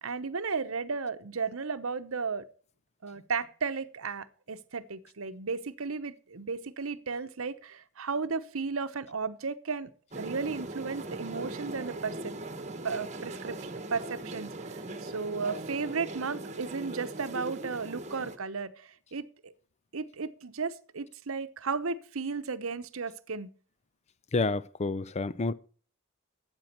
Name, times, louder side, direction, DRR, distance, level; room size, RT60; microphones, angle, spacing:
voice 1, 0.0-2.4 3.0-9.9 10.2-12.3 12.8-19.5 19.9-23.5, right 4 dB, 75° right, 0.9 m, -34 dB
sound 1, 10.1-18.4, right 2 dB, 35° right, 1.2 m, -40 dB
voice 2, 24.3-25.5, left 3 dB, 30° left, 0.5 m, -29 dB
13.0 x 9.0 x 4.4 m
head